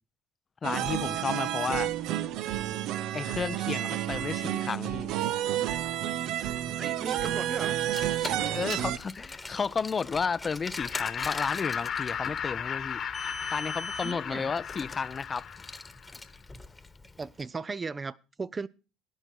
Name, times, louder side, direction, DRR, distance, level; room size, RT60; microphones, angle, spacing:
voice 1, 0.6-1.9 3.1-5.2 8.5-13.0 13.5-15.5, left 5 dB, 30° left, 0.6 m, -32 dB
sound 1, 0.6-9.0, right 12 dB, 70° right, 0.6 m, -30 dB
voice 2, 6.7-7.8 14.0-14.5 17.2-18.7, right 4 dB, 25° right, 0.5 m, -37 dB
Car, 7.7-17.2, left 2 dB, 15° left, 1.3 m, -41 dB
Laughter, 10.8-16.1, left 8 dB, 50° left, 1.4 m, -35 dB
14.0 x 9.8 x 4.6 m
supercardioid pair, 80°, 0 cm